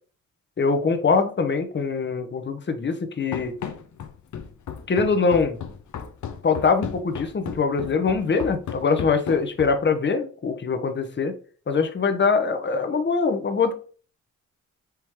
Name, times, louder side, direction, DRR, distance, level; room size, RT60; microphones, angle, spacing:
voice 1, 0.6-3.6 4.9-5.6 6.4-11.3 11.7-13.7, left 5 dB, 35° left, 0.8 m, -23 dB
Run, 3.3-9.9, left 7 dB, 60° left, 0.7 m, -35 dB
4.6 x 3.0 x 3.5 m
cardioid pair, 65°, 32 cm